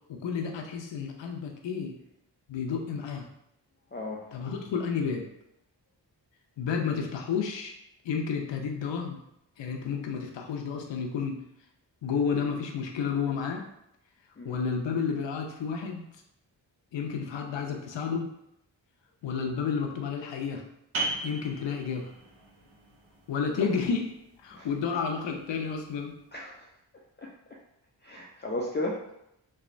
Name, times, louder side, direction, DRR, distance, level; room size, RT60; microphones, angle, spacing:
voice 1, 0.1-1.9 2.5-3.3 4.3-5.3 6.6-7.7 8.0-9.2 9.6-11.4 12.0-13.6 14.4-16.0 16.9-18.3 19.2-20.6 21.2-22.1 23.3-24.1 24.4-26.1, left 6 dB, 70° left, 2 dB, 0.6 m, -31 dB
voice 2, 3.9-4.2 14.4-14.6 23.6-23.7 24.5-24.7 26.3-26.6 27.2-27.3 28.0-29.0, left 1 dB, 25° left, -3 dB, 0.4 m, -34 dB
sound 1, 20.9-26.3, right 2 dB, 80° right, 0.8 m, -39 dB
3.2 x 2.0 x 2.5 m, 0.80 s
cardioid pair, 50°, 47 cm